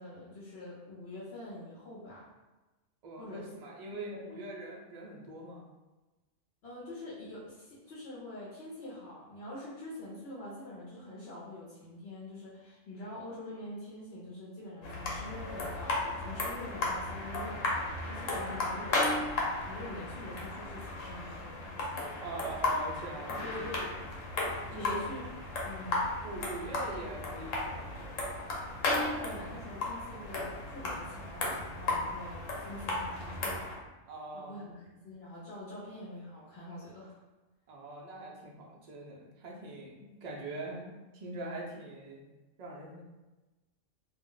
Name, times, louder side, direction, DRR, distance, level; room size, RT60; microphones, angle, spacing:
voice 1, 0.0-2.3 3.1-3.5 3.9-4.4 6.6-19.1 19.6-22.2 23.3-23.9 24.7-25.2 25.6-26.1 28.9-33.8 34.3-37.2, left 1 dB, 60° left, -7 dB, 0.9 m, -45 dB
voice 2, 3.0-5.6 22.2-23.9 24.7-25.1 26.2-28.2 34.1-34.6 37.7-42.2 42.6-43.0, right 2 dB, 55° right, -2 dB, 0.4 m, -42 dB
sound 1, 14.8-33.8, left 2 dB, 85° left, 1.1 m, -35 dB
2.4 x 2.0 x 3.7 m, 1.1 s
omnidirectional pair, 1.3 m